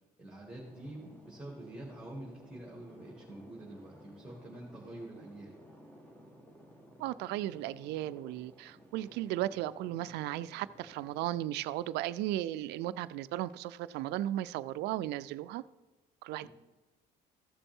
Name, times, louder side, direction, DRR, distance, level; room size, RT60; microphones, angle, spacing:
voice 1, 0.2-5.6 16.4-16.5, right 1 dB, 5° right, 2.2 m, -46 dB
sound 1, 0.5-11.4, equal, 10° left, 1.5 m, -56 dB
voice 2, 7.0-15.6 16.2-16.5, right 14 dB, 85° right, 0.4 m, -35 dB
14.5 x 6.9 x 3.7 m
cardioid pair, 110°, 17 cm